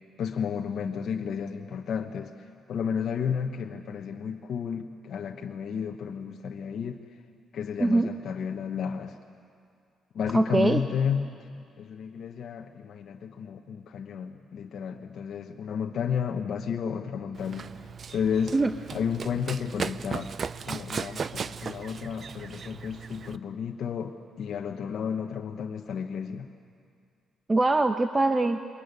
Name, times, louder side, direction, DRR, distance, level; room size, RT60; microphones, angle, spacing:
voice 1, 0.2-7.0 7.5-9.2 10.1-11.5 11.8-18.5 18.9-20.3 20.6-26.5, left 7 dB, 65° left, 2 dB, 1.1 m, -32 dB
voice 2, 10.3-10.8 18.5-18.7 27.5-28.6, right 2 dB, 20° right, 7 dB, 0.9 m, -23 dB
Run, 17.3-23.4, right 6 dB, 45° right, 0.6 m, -37 dB
23.0 x 21.0 x 9.6 m, 2.3 s
cardioid pair, 90°, 0 cm